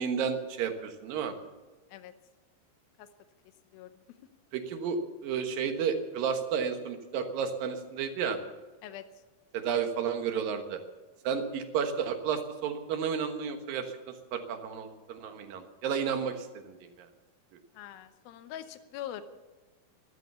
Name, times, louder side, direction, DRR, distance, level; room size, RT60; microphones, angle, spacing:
voice 1, 0.0-1.3 4.5-8.4 9.5-10.8 11.2-17.1, right 7 dB, 75° right, 6 dB, 3.1 m, -32 dB
voice 2, 8.8-9.2 17.7-19.2, left 11 dB, 85° left, 10 dB, 2.7 m, -43 dB
14.5 x 13.0 x 6.9 m, 1.2 s
omnidirectional pair, 4.1 m